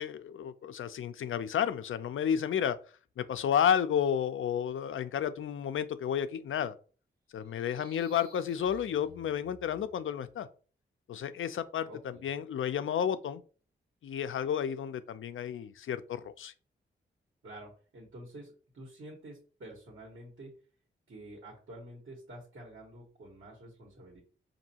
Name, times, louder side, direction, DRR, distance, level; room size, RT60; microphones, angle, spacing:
voice 1, 0.0-2.8 3.2-6.7 7.3-10.5 11.1-13.4 14.0-16.5, left 8 dB, 75° left, 12 dB, 0.5 m, -31 dB
sound 1, 7.4-10.3, right 2 dB, 50° right, 1.0 m, -57 dB
voice 2, 11.9-12.3 17.4-20.6 21.1-24.2, right 1 dB, 75° right, -2 dB, 1.4 m, -49 dB
5.2 x 2.7 x 2.8 m, 0.38 s
cardioid pair, 50°, 21 cm